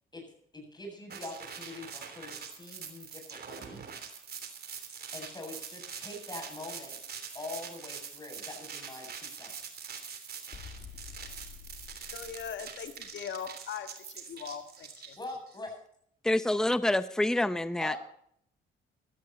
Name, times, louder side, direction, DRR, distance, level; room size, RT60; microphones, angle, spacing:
voice 1, 0.5-3.8 5.1-7.0 7.3-9.8 15.2-15.7 17.8-18.0, left 2 dB, 20° left, 7.7 m, -43 dB
sound 1, 1.1-15.6, right 6 dB, 50° right, 3.2 m, -44 dB
sound 2, 10.5-13.2, left 7 dB, 50° left, 1.7 m, -49 dB
voice 2, 12.1-13.9 14.1-15.2, left 7 dB, 65° left, 1.8 m, -40 dB
voice 3, 16.2-18.0, left 1 dB, 5° left, 0.8 m, -27 dB
16.5 x 13.0 x 4.3 m
cardioid pair, 90°, 20 cm